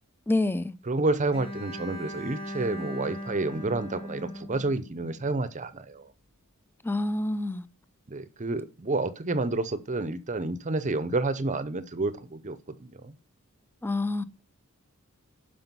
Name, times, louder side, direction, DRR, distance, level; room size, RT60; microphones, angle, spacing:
voice 1, 0.3-0.7 6.8-7.6 13.8-14.2, left 2 dB, 10° left, 0.5 m, -27 dB
voice 2, 0.9-6.1 8.1-13.1, right 2 dB, 35° right, 0.7 m, -29 dB
Bowed string instrument, 1.3-5.4, equal, 25° left, 2.4 m, -39 dB
12.0 x 4.9 x 5.4 m
head